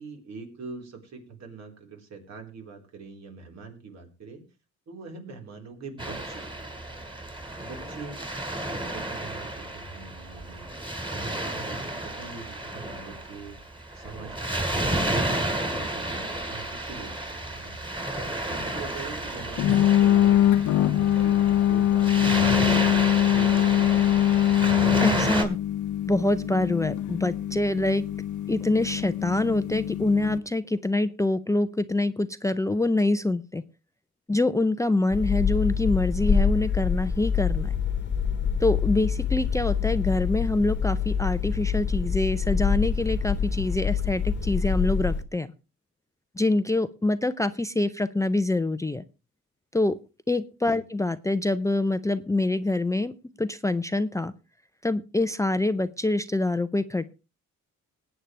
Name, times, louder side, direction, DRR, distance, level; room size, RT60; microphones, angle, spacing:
voice 1, 0.0-4.4 4.9-6.5 7.6-8.2 8.7-10.7 11.1-13.5 13.9-17.7 18.2-23.9 50.6-50.8, right 4 dB, 60° right, 2 dB, 4.2 m, -43 dB
Waves surf, 6.0-25.4, right 1 dB, 15° right, 3.3 m, -31 dB
sound 1, 19.6-30.4, left 11 dB, 75° left, 0.7 m, -23 dB
voice 2, 25.0-25.6 26.1-28.0 28.5-33.6 34.3-37.7 38.6-45.5 46.4-49.0 49.7-50.0 50.3-53.1 53.4-54.3 54.8-57.0, left 2 dB, 10° left, 12 dB, 0.6 m, -25 dB
sound 2, 35.1-45.2, left 6 dB, 40° left, 1.3 m, -26 dB
20.0 x 8.9 x 3.3 m, 0.30 s
cardioid pair, 90°, 30 cm